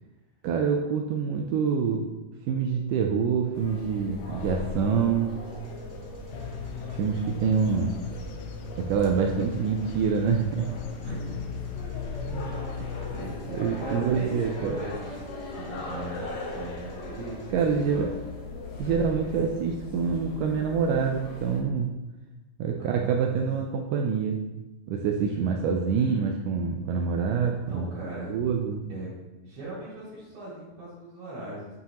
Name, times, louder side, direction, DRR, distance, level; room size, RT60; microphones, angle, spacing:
voice 1, 0.4-2.1 2.5-5.3 7.0-8.0 8.8-10.7 13.5-14.8 17.5-18.1 18.8-22.0 22.6-24.4 24.9-27.9 28.3-28.8, right 6 dB, 90° right, 2 dB, 1.8 m, -26 dB
sound 1, 3.5-21.6, left 2 dB, 70° left, 2.7 m, -39 dB
sound 2, 5.5-17.4, right 1 dB, 55° right, 2.3 m, -47 dB
sound 3, 6.3-14.7, left 7 dB, 90° left, 2.6 m, -38 dB
voice 2, 11.0-11.4 12.2-12.6 13.1-18.1 18.8-19.5 22.8-23.5 25.2-25.4 27.5-29.1 29.4-31.8, right 2 dB, 70° right, -11 dB, 4.3 m, -39 dB
9.4 x 5.7 x 3.0 m, 1.0 s
omnidirectional pair, 4.4 m